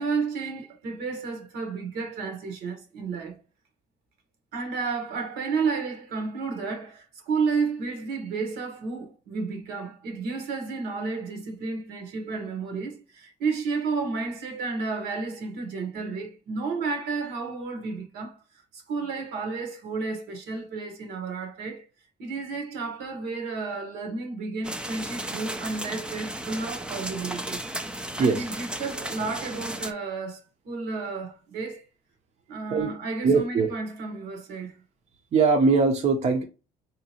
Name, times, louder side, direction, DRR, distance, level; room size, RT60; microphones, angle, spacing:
voice 1, 0.0-3.4 4.5-18.4 18.7-21.8 22.2-27.6 28.2-30.4 30.6-31.8 32.5-34.8, right 4 dB, 75° right, 1.1 m, -32 dB
sound 1, 24.6-29.9, right 1 dB, 5° right, 0.4 m, -35 dB
voice 2, 33.2-33.7 35.3-36.4, right 4 dB, 40° right, 0.7 m, -21 dB
3.8 x 2.8 x 2.8 m
cardioid pair, 110°, 17 cm